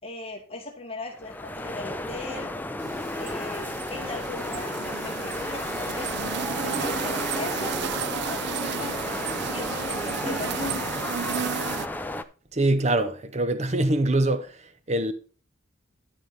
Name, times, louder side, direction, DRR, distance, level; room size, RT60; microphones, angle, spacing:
voice 1, 0.0-2.5 3.1-8.4 8.8-9.0 9.5-10.9, left 2 dB, 30° left, 2.2 m, -38 dB
sound 1, 1.1-12.2, left 1 dB, 10° left, 0.5 m, -33 dB
sound 2, 2.8-11.9, right 8 dB, 60° right, 0.4 m, -33 dB
voice 2, 12.5-14.5 14.9-15.1, right 1 dB, 35° right, 0.9 m, -23 dB
12.5 x 5.0 x 4.2 m
head